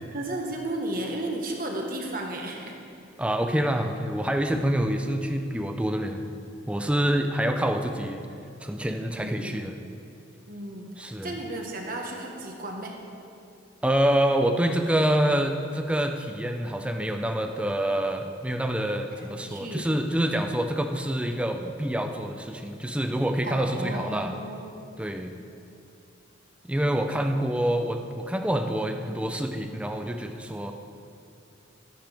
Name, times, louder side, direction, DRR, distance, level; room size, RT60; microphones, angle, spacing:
voice 1, 0.1-2.8 9.2-9.6 10.5-13.0 19.1-19.8 23.4-24.7 26.8-27.4, right 1 dB, 45° right, 1 dB, 1.4 m, -34 dB
voice 2, 3.2-6.2 6.7-8.2 8.6-9.8 11.0-11.3 13.8-24.4 25.0-25.3 26.7-30.7, right 1 dB, 5° right, 5 dB, 0.5 m, -26 dB
16.5 x 8.9 x 3.5 m, 2.6 s
head